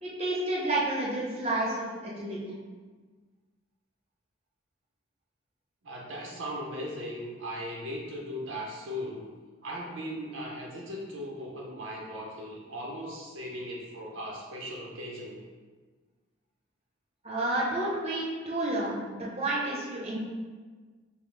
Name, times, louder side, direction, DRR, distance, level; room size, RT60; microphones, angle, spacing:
voice 1, 0.0-2.5 17.2-20.2, right 2 dB, 30° right, -5 dB, 0.9 m, -30 dB
voice 2, 5.8-9.3 9.6-15.4, equal, 80° right, -3 dB, 0.8 m, -38 dB
5.4 x 2.2 x 3.3 m, 1.4 s
head